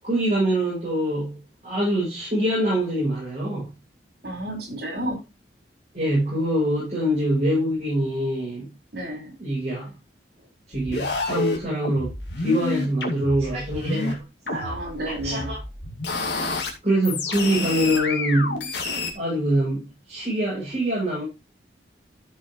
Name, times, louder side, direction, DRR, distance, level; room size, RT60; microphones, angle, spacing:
voice 1, 0.0-1.4 1.6-3.7 5.9-8.7 9.4-9.9 10.7-12.1 12.4-14.2 14.5-14.8 15.0-15.6 16.8-18.7 19.1-21.2, right 1 dB, 40° right, 7.8 m, -24 dB
voice 2, 4.2-5.2 8.9-9.3 14.5-15.5, right 1 dB, 65° right, 5.3 m, -31 dB
sound 1, 10.7-14.1 14.5-16.7 17.0-19.1, left 3 dB, 80° left, 2.5 m, -29 dB
14.0 x 6.6 x 3.2 m
head